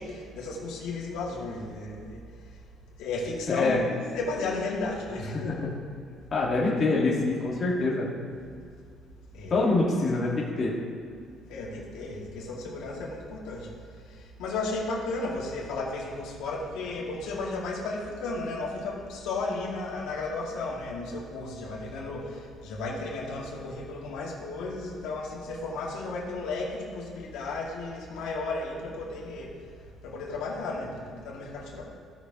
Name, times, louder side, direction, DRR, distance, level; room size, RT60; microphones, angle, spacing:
voice 1, 0.0-2.2 3.0-5.5 9.3-9.6 11.5-13.7 14.4-29.5 30.0-31.8, left 3 dB, 85° left, -4 dB, 2.1 m, -34 dB
voice 2, 3.5-3.8 5.5-5.6 6.3-8.1 9.5-10.7, left 3 dB, 30° left, -5 dB, 1.6 m, -25 dB
16.5 x 6.3 x 2.9 m, 2.3 s
cardioid pair, 160°, 0 cm